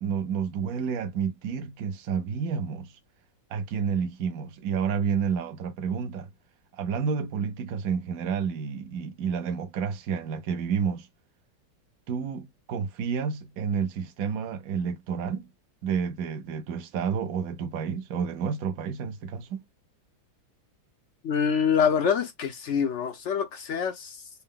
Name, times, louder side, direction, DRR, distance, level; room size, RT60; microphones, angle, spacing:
voice 1, 0.0-3.0 3.5-6.3 6.8-11.1 12.1-15.5 15.8-19.6, right 6 dB, 65° right, 1.0 m, -30 dB
voice 2, 21.2-24.3, left 7 dB, 70° left, 0.6 m, -26 dB
4.2 x 2.1 x 3.6 m
omnidirectional pair, 2.0 m